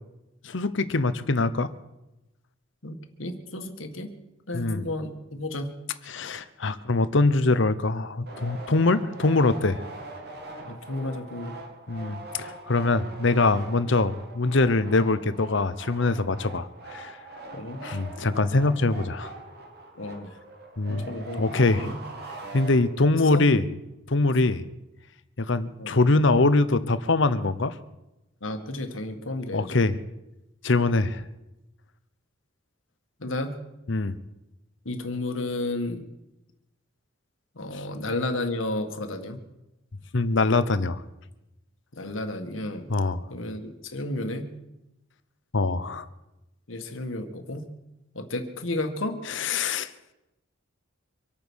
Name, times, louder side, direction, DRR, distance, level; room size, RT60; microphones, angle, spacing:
voice 1, 0.4-1.7 4.5-4.8 6.1-9.8 11.9-17.2 17.8-19.3 20.8-21.1 21.4-21.9 22.5-23.6 24.1-24.6 25.4-27.8 29.5-30.0 30.6-31.2 33.9-34.2 40.1-41.0 42.9-43.2 45.5-46.1 49.3-49.9, left 3 dB, 65° left, 14 dB, 0.9 m, -23 dB
voice 2, 2.8-4.2 4.5-5.7 10.6-11.6 17.5-17.8 20.0-20.3 20.9-22.0 23.1-23.4 25.8-25.9 28.4-29.8 33.2-33.6 34.9-36.1 37.6-39.4 41.9-42.9 43.3-44.5 46.7-47.7 48.1-49.2, left 2 dB, 85° left, 7 dB, 1.8 m, -32 dB
sound 1, 8.3-23.2, right 2 dB, 55° right, 2.4 m, -42 dB
25.0 x 8.9 x 6.4 m, 0.94 s
head